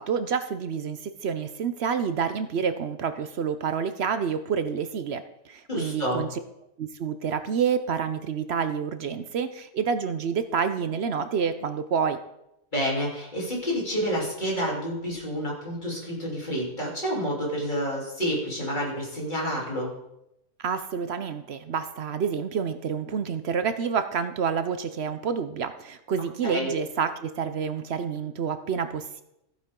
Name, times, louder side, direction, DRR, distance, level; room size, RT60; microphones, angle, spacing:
voice 1, 0.0-6.3 6.8-12.2 20.6-29.2, right 6 dB, 60° right, 11 dB, 0.8 m, -28 dB
voice 2, 5.7-6.2 12.7-19.9 26.4-26.7, equal, 35° left, -4 dB, 3.5 m, -29 dB
14.5 x 8.8 x 3.7 m, 0.83 s
omnidirectional pair, 1.4 m